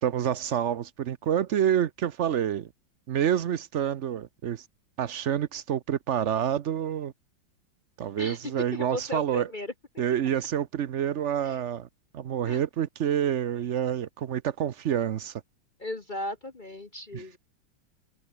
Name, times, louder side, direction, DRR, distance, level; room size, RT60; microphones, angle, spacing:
voice 1, 0.0-2.7 3.1-4.6 5.0-7.1 8.0-9.5 10.0-11.9 12.1-15.3 17.1-17.4, right 9 dB, 60° right, 0.7 m, -28 dB
voice 2, 8.7-9.7 11.4-11.6 12.4-12.6 15.8-17.4, left 1 dB, 30° left, 1.2 m, -36 dB
omnidirectional pair, 2.1 m